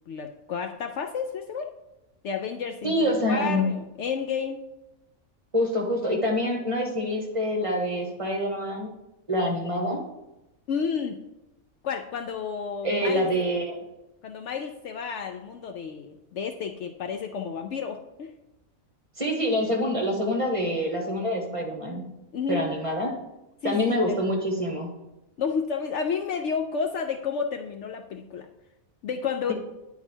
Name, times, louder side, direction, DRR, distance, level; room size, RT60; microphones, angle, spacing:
voice 1, 0.1-1.7 2.2-4.6 10.7-11.2 11.8-13.3 14.2-18.3 22.3-22.7 23.6-24.2 25.4-28.5 29.0-29.5, left 6 dB, 65° left, 5 dB, 0.8 m, -31 dB
voice 2, 2.8-3.7 5.5-8.9 9.3-10.0 12.8-13.8 19.2-22.0 22.5-23.1 23.6-24.9, equal, 25° right, 0 dB, 1.1 m, -26 dB
9.8 x 4.1 x 4.4 m, 0.95 s
omnidirectional pair, 1.5 m